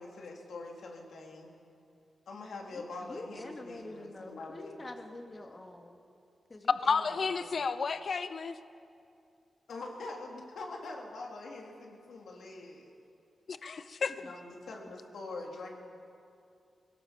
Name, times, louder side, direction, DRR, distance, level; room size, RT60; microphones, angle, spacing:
voice 1, 0.0-1.5 2.3-4.8 9.7-12.9 14.2-15.7, left 3 dB, 80° left, 0 dB, 3.3 m, -44 dB
voice 2, 2.5-6.0 6.5-7.6 14.2-14.3, left 2 dB, 35° left, 3 dB, 2.7 m, -47 dB
voice 3, 6.8-8.6 13.5-14.2, left 5 dB, 60° left, 12 dB, 0.6 m, -32 dB
22.0 x 17.5 x 7.5 m, 2.5 s
cardioid pair, 60°, 0 cm